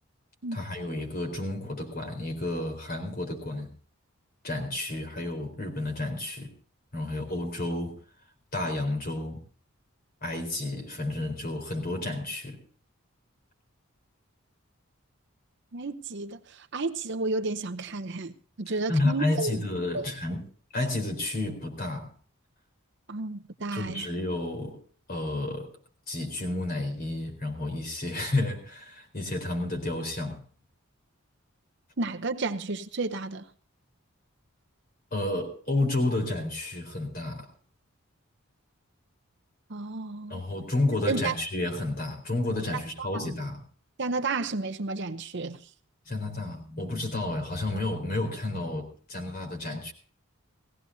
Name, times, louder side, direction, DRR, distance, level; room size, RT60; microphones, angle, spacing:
voice 1, 0.5-3.7 4.4-6.5 6.9-8.0 8.5-9.4 10.2-12.6 18.7-20.4 20.7-22.1 23.7-24.8 25.1-25.7 26.1-30.4 35.1-37.5 40.3-43.6 46.1-49.9, left 2 dB, 45° left, 4.2 m, -31 dB
voice 2, 15.7-19.6 19.9-20.1 23.1-24.1 32.0-33.4 39.7-40.4 41.1-41.3 43.0-43.4 44.0-45.6, right 3 dB, 55° right, 0.8 m, -32 dB
19.5 x 16.0 x 2.8 m
head